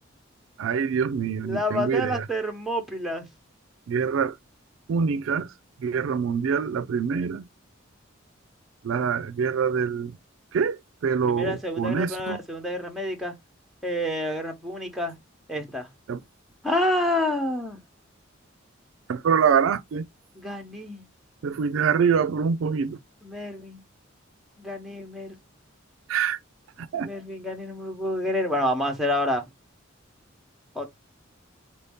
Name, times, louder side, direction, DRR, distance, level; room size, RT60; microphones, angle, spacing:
voice 1, 0.6-2.2 3.9-4.3 4.9-5.5 5.8-7.4 8.8-10.2 10.5-10.8 11.0-12.4 16.1-16.2 19.1-20.1 21.4-23.0 26.1-26.4 26.8-27.1, right 6 dB, 70° right, 0.4 m, -25 dB
voice 2, 1.4-3.2 11.2-13.3 13.8-15.1 15.5-15.9 16.6-17.8 20.3-21.0 23.2-23.8 24.6-25.4 26.9-29.5 30.7-30.8, left 1 dB, ahead, 0.9 m, -28 dB
4.2 x 2.7 x 3.5 m
head